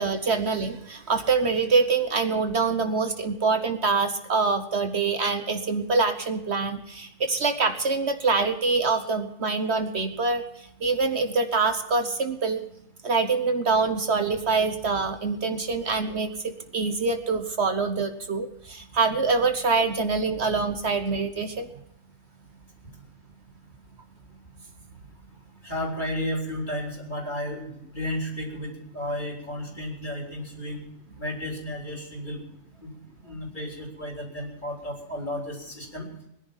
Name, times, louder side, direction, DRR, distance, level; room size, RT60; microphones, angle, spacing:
voice 1, 0.0-12.6 13.0-21.7, right 4 dB, 55° right, 8 dB, 1.2 m, -25 dB
voice 2, 25.6-30.8 31.2-32.4 32.8-32.9 33.2-36.1, left 1 dB, 35° left, 0 dB, 3.8 m, -33 dB
20.0 x 10.5 x 5.6 m, 0.78 s
omnidirectional pair, 1.4 m